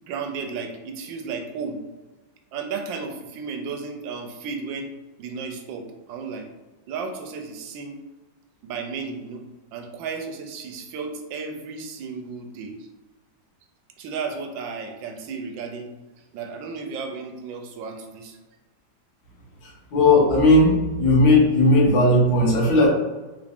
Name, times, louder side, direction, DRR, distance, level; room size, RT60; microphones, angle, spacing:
voice 1, 0.0-1.8 2.5-4.9 5.2-6.5 6.9-8.0 8.6-9.4 9.7-12.8 14.0-15.9 16.3-18.4, right 5 dB, 85° right, 5 dB, 1.4 m, -33 dB
voice 2, 19.6-22.9, left 2 dB, 85° left, -3 dB, 1.9 m, -17 dB
3.8 x 3.5 x 3.5 m, 1.2 s
omnidirectional pair, 2.0 m